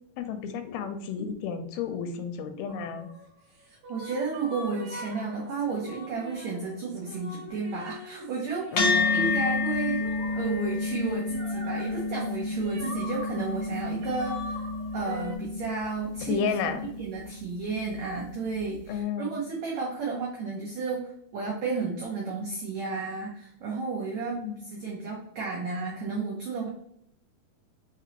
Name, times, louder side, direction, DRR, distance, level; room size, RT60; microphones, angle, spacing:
voice 1, 0.2-3.1 8.7-9.4 16.3-16.8 18.9-19.4 24.4-24.6, left 6 dB, 85° left, 7 dB, 2.4 m, -32 dB
sound 1, 2.7-15.4, equal, 60° right, 2.2 m, -44 dB
voice 2, 3.9-10.0 10.4-14.6 14.9-16.4 17.0-24.4 24.7-26.7, right 4 dB, 80° right, -2 dB, 1.6 m, -32 dB
sound 2, 8.8-17.4, left 3 dB, 65° left, 1.5 m, -30 dB
5.9 x 3.1 x 2.9 m, 0.69 s
omnidirectional pair, 4.4 m